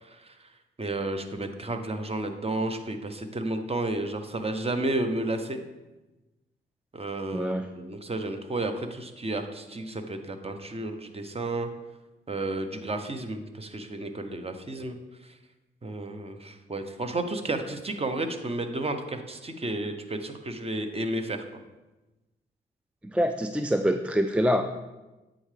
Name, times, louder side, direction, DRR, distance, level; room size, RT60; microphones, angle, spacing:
voice 1, 0.0-0.4 0.8-5.6 6.9-11.7 12.3-15.0 15.2-15.3 15.8-21.4, right 2 dB, 30° right, 7 dB, 0.8 m, -32 dB
voice 2, 7.3-7.7 23.1-24.6, equal, 5° right, 7 dB, 0.3 m, -25 dB
8.5 x 3.7 x 3.3 m, 1.1 s
supercardioid pair, 50°, 21 cm